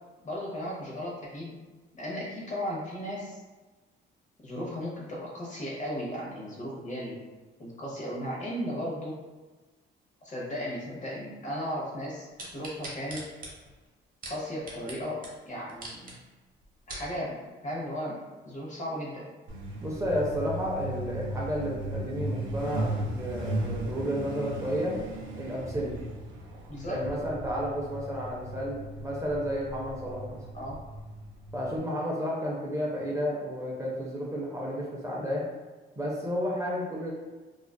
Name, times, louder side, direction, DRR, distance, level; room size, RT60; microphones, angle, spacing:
voice 1, 0.2-1.6 1.9-3.4 4.4-7.2 7.6-9.2 10.2-13.2 14.3-16.2 16.9-19.2 26.7-27.0 30.5-30.8, equal, 40° left, -3 dB, 0.8 m, -36 dB
sound 1, 12.4-15.0 15.2-15.3 15.7-16.1 16.6-17.1 17.7-17.8, right 1 dB, 45° right, 0.9 m, -41 dB
Truck, 19.5-31.8, right 1 dB, 75° right, 0.5 m, -37 dB
voice 2, 19.8-25.0 25.3-25.9 26.9-30.4 31.5-35.4 36.0-37.1, equal, 15° right, -4 dB, 0.5 m, -32 dB
2.4 x 2.3 x 2.3 m, 1.3 s
cardioid pair, 90°, 20 cm